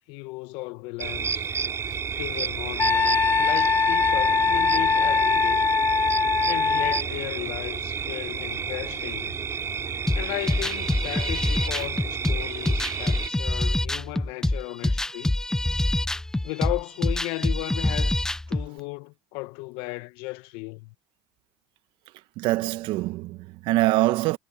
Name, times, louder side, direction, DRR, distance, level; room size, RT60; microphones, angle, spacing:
voice 1, 0.1-1.5 2.2-5.6 6.5-9.4 10.1-15.3 16.4-20.9, left 24 dB, 70° left, 1.1 m, -35 dB
sound 1, 1.0-13.3, right 6 dB, 30° right, 3.5 m, -31 dB
Wind instrument woodwind instrument, 2.8-7.0, left 5 dB, 20° left, 1.1 m, -22 dB
sound 2, 10.1-18.7, left 1 dB, 5° left, 0.7 m, -25 dB
voice 2, 22.4-24.4, right 18 dB, 60° right, 1.4 m, -24 dB
supercardioid pair, 90°, 9 cm